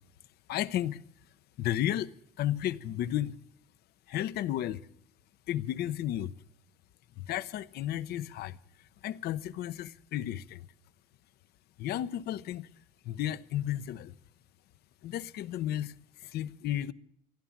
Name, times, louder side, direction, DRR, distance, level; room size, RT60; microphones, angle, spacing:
voice 1, 0.5-1.0 1.6-3.4 4.1-4.8 5.5-6.3 7.2-8.6 9.0-10.7 11.8-12.7 13.0-14.1 15.0-15.9 16.2-16.9, left 12 dB, 70° left, 0.7 m, -33 dB
15.0 x 11.5 x 7.2 m
cardioid pair, 110°, 17 cm